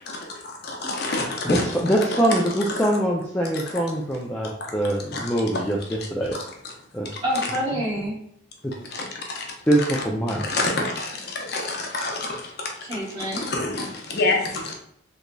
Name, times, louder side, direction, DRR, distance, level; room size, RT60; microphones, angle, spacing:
voice 1, 0.4-1.7 2.1-2.3 5.1-5.6 8.9-9.5 10.3-12.5 13.3-14.7, left 2 dB, 50° left, 0 dB, 0.6 m, -27 dB
voice 2, 1.4-6.4 6.9-7.1 8.6-8.7 9.7-10.5, right 1 dB, 10° left, -3 dB, 0.3 m, -23 dB
voice 3, 7.2-8.2 12.8-13.5, equal, 30° right, -7 dB, 1.4 m, -27 dB
3.8 x 3.0 x 2.2 m, 0.68 s
head